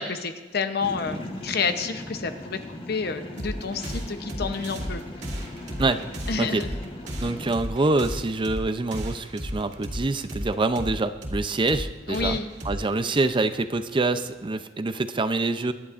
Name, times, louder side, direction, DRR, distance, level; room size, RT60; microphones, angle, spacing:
voice 1, 0.0-2.6 2.9-5.0 6.3-6.7 12.1-12.5, left 4 dB, 60° left, 8 dB, 0.8 m, -29 dB
sound 1, 0.8-7.5, left 1 dB, 30° left, 1.4 m, -39 dB
sound 2, 3.4-14.5, equal, 65° right, 2.4 m, -35 dB
voice 2, 7.2-12.4 12.6-15.7, right 2 dB, 25° right, 10 dB, 0.5 m, -25 dB
23.5 x 11.0 x 2.5 m, 1.3 s
head